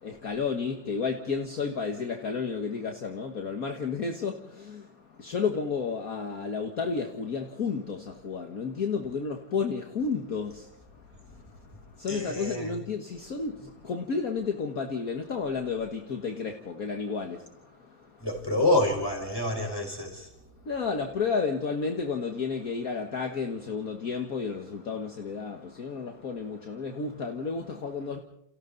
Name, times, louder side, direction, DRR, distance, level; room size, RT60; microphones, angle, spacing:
voice 1, 0.0-18.3 20.6-28.2, left 5 dB, 50° left, 2.0 m, -32 dB
voice 2, 12.1-12.7 18.2-20.3, left 1 dB, 10° left, 5.2 m, -27 dB
30.0 x 29.0 x 4.1 m
omnidirectional pair, 2.0 m